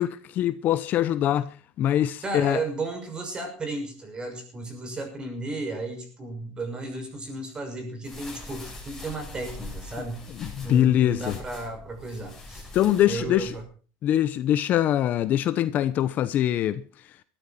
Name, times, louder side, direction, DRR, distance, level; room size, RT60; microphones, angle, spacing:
voice 1, 0.0-2.6 10.4-11.3 12.7-13.5 14.0-16.8, left 11 dB, 50° left, 0.9 m, -23 dB
voice 2, 2.2-10.2 10.6-12.7 13.1-13.6, right 2 dB, 25° right, 6.0 m, -34 dB
sound 1, 8.0-13.6, left 2 dB, 5° left, 7.4 m, -42 dB
18.5 x 13.5 x 4.3 m
supercardioid pair, 125°, 4 cm